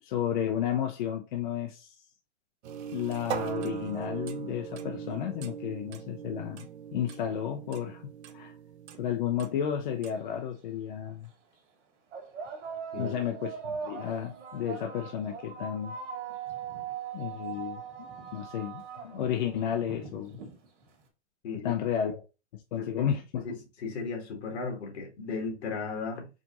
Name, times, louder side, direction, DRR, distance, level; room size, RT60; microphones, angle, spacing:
voice 1, 0.0-2.0 2.9-8.0 8.3-8.5 8.9-11.3 13.0-16.0 17.1-20.4 21.5-22.2 22.5-23.5, left 9 dB, 45° left, 0.5 m, -32 dB
sound 1, 2.6-10.2, right 8 dB, 70° right, 0.7 m, -40 dB
sound 2, 10.0-10.1 11.1-11.2 12.1-21.0, right 7 dB, 85° right, 1.9 m, -40 dB
voice 2, 22.8-23.1 23.3-23.5 23.8-26.3, left 4 dB, 65° left, 1.8 m, -35 dB
4.8 x 2.8 x 2.5 m
supercardioid pair, 175°, 35 cm